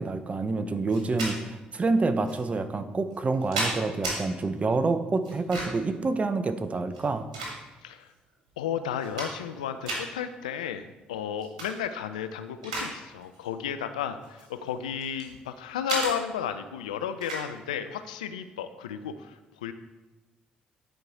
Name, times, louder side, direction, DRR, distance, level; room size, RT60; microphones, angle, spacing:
voice 1, 0.0-7.3, right 3 dB, 35° right, 10 dB, 0.7 m, -27 dB
sound 1, 0.9-1.3 2.3-2.4 3.1-4.2 5.2-5.9 6.9-7.9 8.5-8.6 8.9-9.6 9.8-10.0 11.4-11.7 12.1-12.9 13.2-13.5 14.2-15.3 15.9-16.1 17.2-17.5, right 2 dB, 90° right, 1.6 m, -33 dB
voice 2, 8.6-19.7, left 8 dB, 90° left, 10 dB, 0.4 m, -33 dB
10.0 x 4.7 x 4.0 m, 1.1 s
hypercardioid pair, 50°, 4 cm